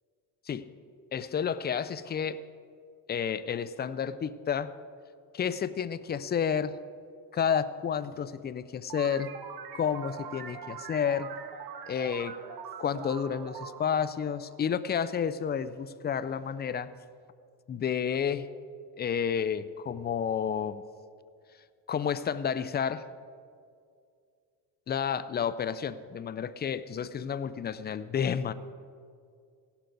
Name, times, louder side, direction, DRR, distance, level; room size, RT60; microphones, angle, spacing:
voice 1, 1.1-2.4 3.1-4.7 5.3-6.8 7.3-9.3 9.7-11.3 11.9-12.4 12.8-16.9 17.7-18.5 19.0-20.8 21.9-23.0 24.9-28.5, left 7 dB, 25° left, 15 dB, 0.3 m, -30 dB
sound 1, 8.9-15.1, right 7 dB, 50° right, 1.2 m, -43 dB
16.0 x 11.5 x 3.9 m, 2.3 s
cardioid pair, 105°, 49 cm